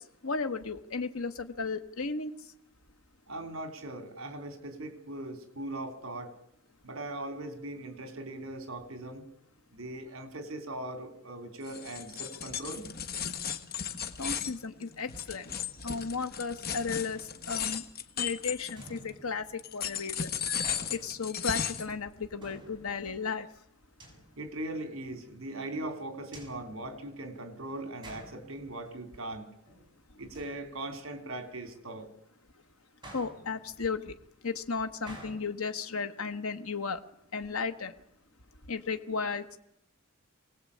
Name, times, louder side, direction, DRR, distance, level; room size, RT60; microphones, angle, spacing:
voice 1, 0.0-2.5 14.2-15.5 15.8-17.8 18.2-20.3 20.9-23.5 33.1-34.1 34.4-37.0 37.3-37.9 38.7-39.6, left 4 dB, 70° left, 7 dB, 1.2 m, -34 dB
voice 2, 3.3-6.3 6.8-9.2 9.7-12.9 24.4-29.5 30.2-32.1, right 1 dB, 65° right, 7 dB, 3.6 m, -40 dB
sound 1, 11.6-19.1 19.6-21.9, left 8 dB, 45° left, 1.6 m, -35 dB
sound 2, 17.1-17.9 18.8-19.8 20.6-21.6 22.4-23.3 24.0-24.7 26.3-27.5 28.0-29.1 29.4-29.9 30.3-31.2 33.0-34.0 35.1-35.3, right 1 dB, 20° right, 6.7 m, -51 dB
24.0 x 18.5 x 8.5 m, 0.79 s
head